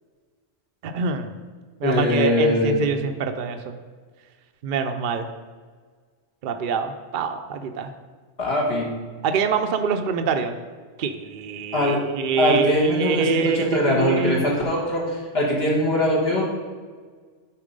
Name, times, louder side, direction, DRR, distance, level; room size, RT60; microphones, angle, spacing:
voice 1, 0.8-1.4 1.8-3.8 4.6-5.3 6.4-7.9 9.2-10.5 11.0-14.4, right 6 dB, 55° right, 6 dB, 0.6 m, -25 dB
voice 2, 1.8-2.8 8.4-8.9 11.7-12.0 12.4-16.4, left 1 dB, 60° left, -3 dB, 1.6 m, -21 dB
8.8 x 4.3 x 5.2 m, 1.5 s
omnidirectional pair, 1.2 m